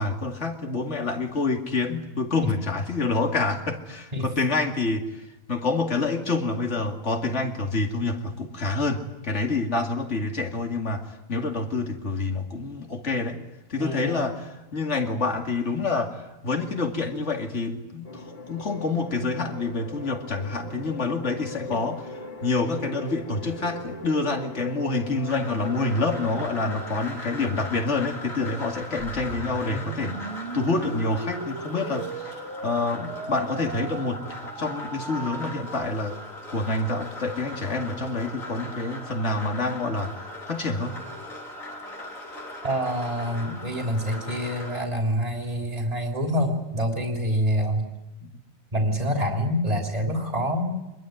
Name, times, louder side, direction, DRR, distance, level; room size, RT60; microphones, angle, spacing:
voice 1, 0.0-5.1 5.5-11.0 11.3-13.4 13.7-22.0 22.4-30.2 30.5-36.2 36.5-40.2 40.5-40.9 48.2-48.3, left 3 dB, 60° left, 4 dB, 2.7 m, -27 dB
voice 2, 13.8-14.2 21.7-21.8 42.6-47.8 48.7-50.7, equal, 30° right, 2 dB, 3.4 m, -26 dB
sound 1, 18.0-27.1, left 2 dB, 40° left, 2.9 m, -39 dB
sound 2, 25.3-44.9, left 1 dB, 90° left, 4.4 m, -39 dB
sound 3, 29.0-35.8, right 2 dB, 60° right, 2.4 m, -37 dB
26.0 x 21.5 x 9.3 m, 1.0 s
omnidirectional pair, 1.4 m